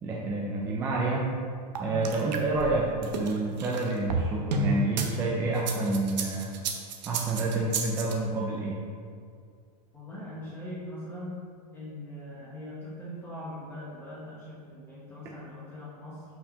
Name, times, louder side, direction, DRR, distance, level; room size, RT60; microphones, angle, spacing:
voice 1, 0.0-1.3 1.8-6.6 7.1-8.8, right 2 dB, 10° right, -3 dB, 0.5 m, -29 dB
sound 1, 1.8-5.1 5.6-8.1, right 3 dB, 90° right, 1.1 m, -31 dB
voice 2, 9.9-11.3 11.7-16.2, left 1 dB, 10° left, -8 dB, 0.9 m, -41 dB
5.8 x 4.6 x 6.2 m, 2.2 s
supercardioid pair, 170°, 21 cm